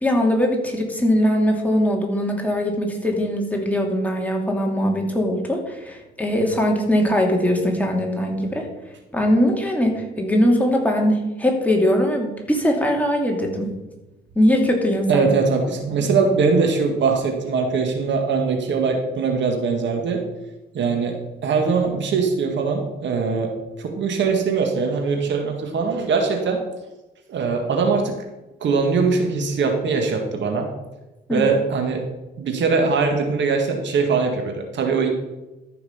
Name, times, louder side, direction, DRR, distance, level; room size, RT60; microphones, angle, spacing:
voice 1, 0.0-8.7 9.1-13.7 14.4-15.3 15.9-16.1 31.3-31.5, equal, 5° left, 0 dB, 2.6 m, -21 dB
voice 2, 15.1-20.2 20.7-21.2 21.4-23.5 23.8-26.6 27.3-28.2 28.6-30.7 31.3-32.1 32.4-35.1, right 4 dB, 65° right, 3 dB, 2.0 m, -21 dB
13.5 x 5.9 x 5.7 m, 1.0 s
cardioid pair, 90°, 20 cm